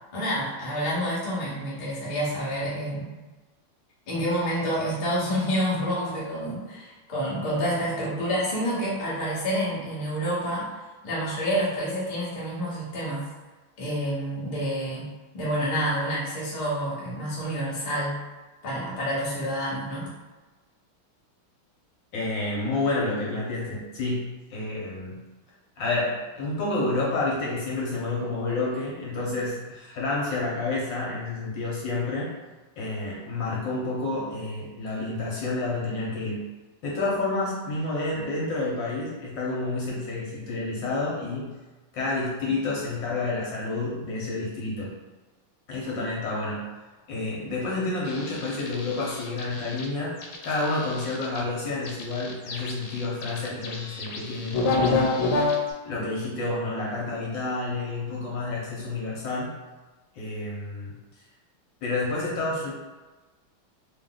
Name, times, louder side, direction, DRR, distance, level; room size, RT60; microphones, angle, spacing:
voice 1, 0.1-3.1 4.1-10.7 11.0-13.2 13.8-18.2 18.6-20.1, equal, 30° left, -7 dB, 0.8 m, -28 dB
voice 2, 22.1-25.2 25.8-32.3 32.8-36.4 36.8-41.6 41.9-44.9 45.7-46.7 47.1-50.2 50.4-55.2 55.8-59.6 60.1-61.0 61.8-62.7, left 2 dB, 65° left, -5 dB, 1.6 m, -29 dB
sound 1, 48.1-49.8 50.2-51.4 51.8-55.7, left 3 dB, 80° left, 1.5 m, -28 dB
3.4 x 2.6 x 3.8 m, 1.2 s
omnidirectional pair, 2.3 m